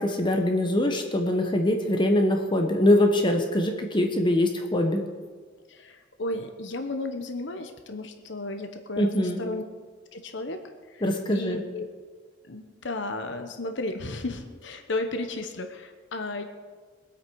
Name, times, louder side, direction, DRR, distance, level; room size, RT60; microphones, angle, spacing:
voice 1, 0.0-5.0 9.0-9.4 11.0-11.6, left 1 dB, 25° left, 3 dB, 1.1 m, -23 dB
voice 2, 5.7-9.6 10.1-10.6 10.9-11.0 11.3-11.9 12.5-16.4, left 2 dB, 70° left, 6 dB, 1.0 m, -34 dB
22.5 x 8.3 x 4.7 m, 1.5 s
head